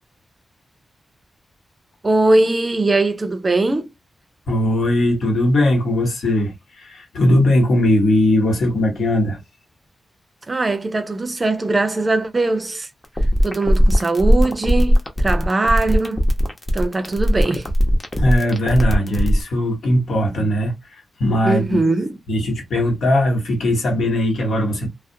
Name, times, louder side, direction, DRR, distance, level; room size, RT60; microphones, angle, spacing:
voice 1, 2.0-3.9 10.5-12.9 13.4-16.3 16.7-17.7 21.4-22.2, right 2 dB, 30° right, 0.5 m, -20 dB
voice 2, 4.5-9.4 18.2-20.7 21.2-21.8 22.3-24.9, left 1 dB, 80° left, 1.1 m, -19 dB
sound 1, 13.0-19.4, equal, 25° left, 0.7 m, -17 dB
2.4 x 2.0 x 2.6 m
cardioid pair, 85°, 0 cm